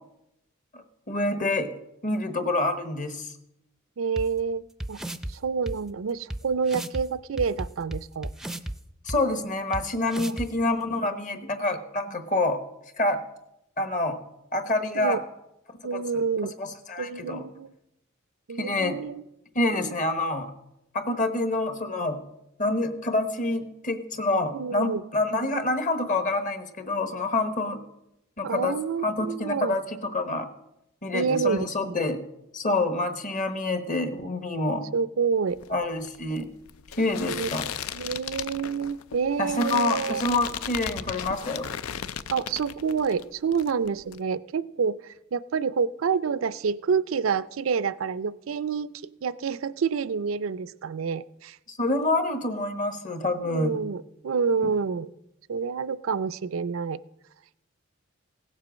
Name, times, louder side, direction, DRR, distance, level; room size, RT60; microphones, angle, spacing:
voice 1, 0.7-1.7 2.0-3.3 9.0-12.6 13.0-13.2 13.8-14.2 14.5-15.2 15.9-16.2 16.6-17.4 18.6-19.0 19.5-20.5 20.9-22.2 22.6-27.8 28.4-28.8 29.0-30.5 31.0-32.2 32.5-34.9 35.7-36.5 36.9-37.7 39.4-41.7 51.7-53.8, left 2 dB, 40° left, 9 dB, 1.1 m, -27 dB
voice 2, 4.0-5.0 5.3-8.3 10.3-10.4 10.9-11.0 14.9-15.2 15.8-16.5 17.0-17.7 18.5-19.2 19.7-19.9 24.5-25.0 28.4-29.7 31.1-32.0 34.9-35.6 37.3-37.5 37.9-40.2 42.3-48.9 49.2-51.6 53.4-55.1 55.5-57.0, right 6 dB, 70° right, 17 dB, 0.4 m, -28 dB
sound 1, 4.2-4.3 4.8-5.3 5.7-5.8 6.3-6.4 6.7-7.0 7.4-8.7 9.1-9.2 9.7-9.8 10.1-10.5, right 1 dB, ahead, 0.5 m, -33 dB
sound 2, 35.5-43.2 43.5-44.2, left 8 dB, 90° left, 0.5 m, -36 dB
16.5 x 7.5 x 6.2 m, 0.87 s
head